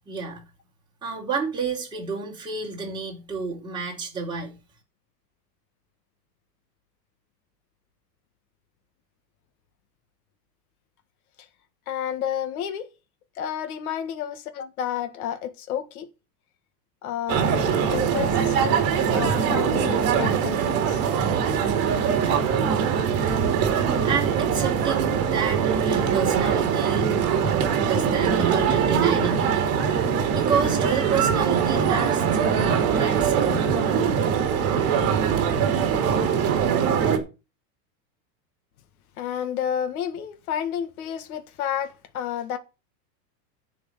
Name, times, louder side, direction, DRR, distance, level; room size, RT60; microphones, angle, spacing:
voice 1, 0.1-0.4 1.0-4.5 24.0-29.7 30.3-32.2 32.5-33.7, right 5 dB, 10° right, 4.1 m, -30 dB
voice 2, 11.9-12.9 13.4-16.1 17.0-18.8 19.1-21.0 27.2-27.3 31.5-31.6 39.2-42.6, left 9 dB, 60° left, 1.8 m, -31 dB
sound 1, 17.3-37.2, right 7 dB, 30° right, 2.9 m, -22 dB
10.0 x 4.9 x 7.9 m
supercardioid pair, 165°, 50 cm